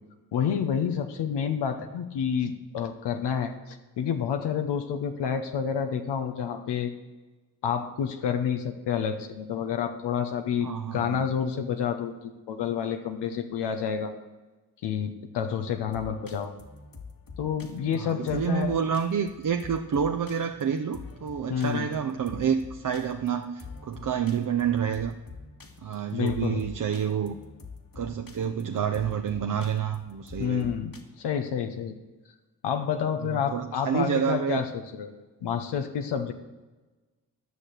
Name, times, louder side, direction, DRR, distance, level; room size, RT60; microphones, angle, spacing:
voice 1, 0.3-6.9 7.6-14.1 14.8-16.5 17.4-18.8 21.5-21.9 26.1-26.6 30.4-31.9 32.6-35.1 35.4-36.3, left 7 dB, 85° left, 6 dB, 0.8 m, -29 dB
voice 2, 10.6-11.2 18.0-25.1 25.8-27.4 28.0-30.7 33.3-34.6, right 7 dB, 50° right, 5 dB, 0.8 m, -28 dB
sound 1, 15.9-31.0, left 4 dB, 60° left, 1.8 m, -46 dB
11.0 x 6.5 x 7.5 m, 1.2 s
supercardioid pair, 45°, 40 cm